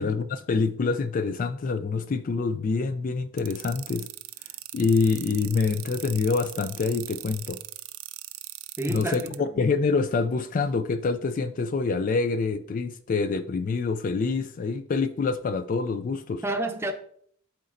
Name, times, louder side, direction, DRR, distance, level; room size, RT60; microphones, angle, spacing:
voice 1, 0.0-4.1 4.7-7.6 8.9-16.4, left 4 dB, 40° left, 0.3 m, -26 dB
sound 1, 3.4-9.4, right 17 dB, 70° right, 0.4 m, -39 dB
voice 2, 8.8-9.5 16.4-16.9, right 2 dB, 10° right, 0.7 m, -30 dB
12.0 x 4.1 x 2.5 m
head